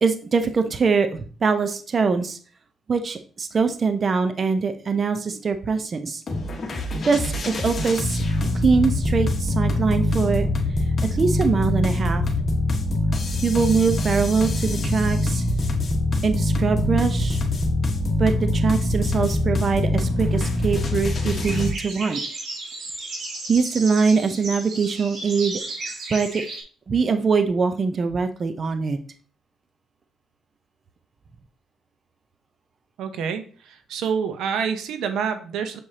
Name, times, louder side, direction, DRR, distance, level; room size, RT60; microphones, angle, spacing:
voice 1, 0.0-2.4 2.9-6.2 7.0-8.2 8.5-10.5 11.0-12.2 13.4-15.4 16.2-17.4 18.2-22.2 23.5-26.4 26.9-29.0, right 5 dB, 40° right, 8 dB, 0.6 m, -23 dB
sound 1, 6.3-21.7, left 1 dB, 40° left, 1.3 m, -24 dB
sound 2, 21.3-26.6, right 2 dB, 65° right, 2.1 m, -34 dB
voice 2, 33.0-35.8, right 6 dB, 80° right, 8 dB, 0.8 m, -27 dB
7.1 x 4.9 x 2.8 m, 0.42 s
cardioid pair, 90°, 0 cm